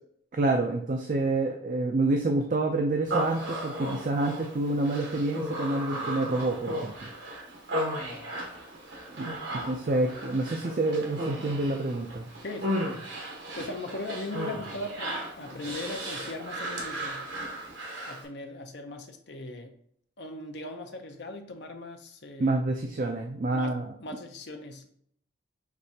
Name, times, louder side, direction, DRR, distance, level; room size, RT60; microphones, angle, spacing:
voice 1, 0.3-7.1 9.2-9.3 9.5-12.3 22.4-23.9, right 2 dB, 40° right, 3 dB, 0.4 m, -28 dB
Human voice, 3.1-18.3, equal, 70° right, 1.2 m, -35 dB
voice 2, 12.4-12.8 13.6-17.3 18.1-19.8 20.2-22.6 23.5-24.9, left 2 dB, 60° left, 4 dB, 0.7 m, -39 dB
6.0 x 3.2 x 2.7 m, 0.66 s
head